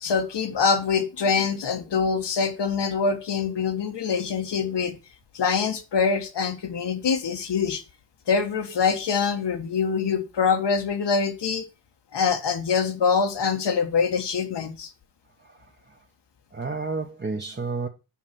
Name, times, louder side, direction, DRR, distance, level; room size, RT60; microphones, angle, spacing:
voice 1, 0.0-5.0 5.3-7.8 8.3-11.6 12.1-14.9, left 5 dB, 90° left, 1.4 m, -24 dB
voice 2, 15.4-16.0 16.5-17.9, right 4 dB, 25° right, 0.9 m, -31 dB
7.2 x 4.8 x 5.8 m
wide cardioid pair, 85°, 40 cm